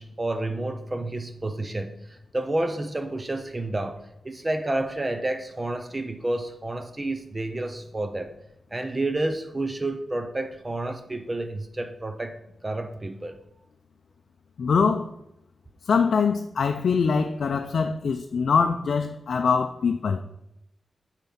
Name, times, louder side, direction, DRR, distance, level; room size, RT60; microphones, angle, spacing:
voice 1, 0.0-8.3 8.7-12.4 12.6-13.4, right 2 dB, 20° right, 0.4 m, -30 dB
voice 2, 14.6-15.1 15.9-20.2, left 5 dB, 75° left, 0.4 m, -23 dB
8.2 x 4.4 x 5.5 m
wide cardioid pair, 175°, 0 cm